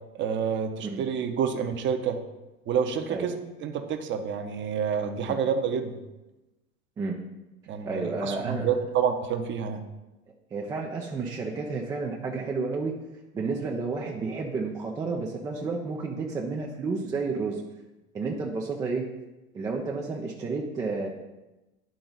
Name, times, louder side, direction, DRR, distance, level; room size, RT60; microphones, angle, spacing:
voice 1, 0.1-2.2 2.7-6.0 7.7-9.8, right 7 dB, 25° right, 6 dB, 0.7 m, -28 dB
voice 2, 7.8-8.7 10.5-12.9 13.3-17.6 18.1-19.0 19.5-21.1, right 4 dB, 10° right, 0 dB, 0.3 m, -31 dB
10.5 x 3.8 x 3.9 m, 1.0 s
figure-of-eight pair, 80°, 42 cm